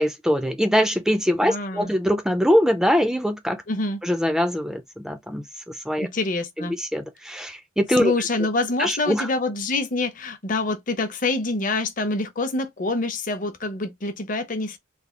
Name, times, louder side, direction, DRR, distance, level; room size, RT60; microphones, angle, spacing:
voice 1, 0.0-3.6 4.0-6.1 6.8-8.1 8.8-9.3, equal, 5° right, 0.4 m, -22 dB
voice 2, 1.4-1.9 3.7-4.0 6.0-6.7 8.0-14.8, left 2 dB, 40° left, 0.7 m, -26 dB
3.3 x 2.3 x 3.7 m
head